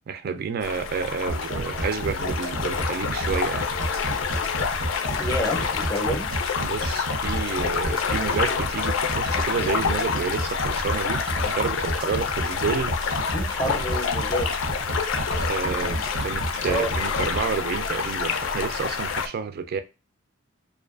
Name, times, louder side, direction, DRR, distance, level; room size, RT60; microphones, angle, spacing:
voice 1, 0.1-3.7 6.6-13.0 15.3-19.8, right 6 dB, 50° right, 0.3 m, -30 dB
sound 1, 0.6-19.3, left 6 dB, 75° left, 0.4 m, -27 dB
sound 2, 1.3-17.4, right 2 dB, 85° right, 0.7 m, -30 dB
voice 2, 5.2-6.3 13.3-14.5 15.7-16.0 16.6-16.9, equal, 15° left, 0.5 m, -29 dB
2.5 x 2.3 x 2.4 m
head